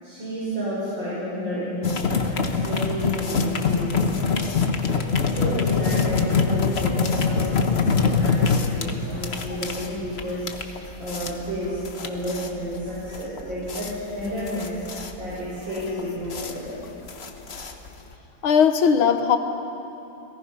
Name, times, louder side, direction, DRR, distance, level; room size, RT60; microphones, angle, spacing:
voice 1, 0.0-4.3 5.1-10.6 11.0-14.8 15.2-16.8, equal, 65° right, -10 dB, 6.8 m, -31 dB
sound 1, 1.8-18.1, left 5 dB, 40° left, 1.1 m, -25 dB
voice 2, 18.4-19.4, left 7 dB, 80° left, 8 dB, 1.9 m, -18 dB
29.5 x 19.0 x 5.7 m, 3.0 s
omnidirectional pair, 2.3 m